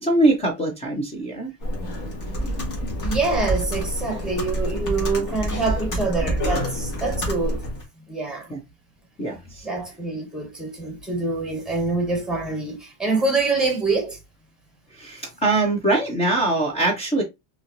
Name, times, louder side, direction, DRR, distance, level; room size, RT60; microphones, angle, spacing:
voice 1, 0.0-1.5 2.3-2.5 8.5-8.6 9.2-9.6 15.0-17.2, right 2 dB, 15° left, 0.4 m, -22 dB
Computer keyboard, 1.6-7.8, equal, 40° left, 1.7 m, -27 dB
voice 2, 3.0-7.6 8.1-8.5 9.6-14.2, right 3 dB, ahead, 1.0 m, -25 dB
4.1 x 2.9 x 2.5 m
cardioid pair, 155°, 49 cm